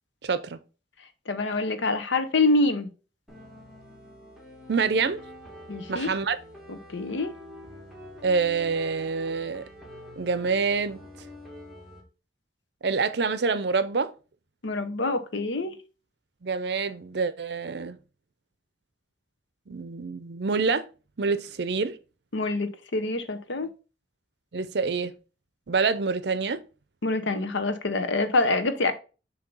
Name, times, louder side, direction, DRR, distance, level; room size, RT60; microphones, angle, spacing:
voice 1, 0.2-0.6 4.7-5.2 5.9-6.4 8.2-9.7 10.2-11.1 12.8-14.1 16.4-18.0 19.7-20.9 21.2-22.0 24.5-25.1 25.7-26.6, right 4 dB, 65° right, 0.5 m, -26 dB
voice 2, 1.3-2.9 5.7-6.1 6.7-7.3 14.6-15.8 22.3-23.7 27.0-28.9, left 2 dB, 85° left, 0.8 m, -26 dB
sound 1, 3.3-12.0, left 1 dB, ahead, 1.4 m, -46 dB
6.7 x 2.8 x 5.4 m
head